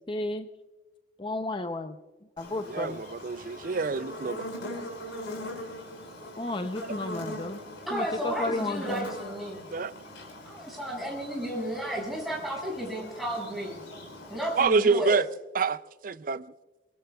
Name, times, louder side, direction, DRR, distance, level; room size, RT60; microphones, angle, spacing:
voice 1, 0.1-0.5 1.2-2.0 2.4-3.0 6.4-7.6 7.9-9.1, left 2 dB, 25° left, 0.6 m, -32 dB
Buzz, 2.4-14.7, left 1 dB, 85° left, 5.2 m, -42 dB
voice 2, 2.7-4.5 9.7-9.9 14.6-15.2 15.5-15.8 16.0-16.4, right 4 dB, 45° right, 0.4 m, -26 dB
voice 3, 7.9-9.6 10.4-13.8 14.3-15.2, equal, ahead, 6.3 m, -33 dB
24.5 x 22.0 x 2.3 m
head